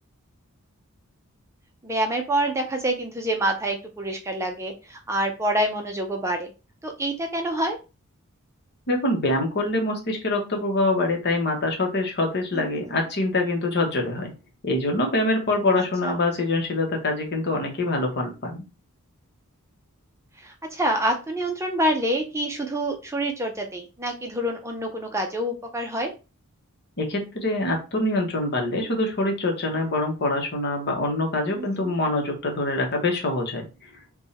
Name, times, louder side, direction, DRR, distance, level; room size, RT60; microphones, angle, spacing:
voice 1, 1.8-6.5 6.8-7.8 12.5-12.7 16.0-16.1 20.4-26.1 31.6-31.9, right 1 dB, 15° right, 3 dB, 0.5 m, -27 dB
voice 2, 8.9-14.3 14.6-18.6 27.0-33.7, left 2 dB, 50° left, 2 dB, 1.1 m, -25 dB
3.5 x 2.3 x 4.1 m, 0.29 s
head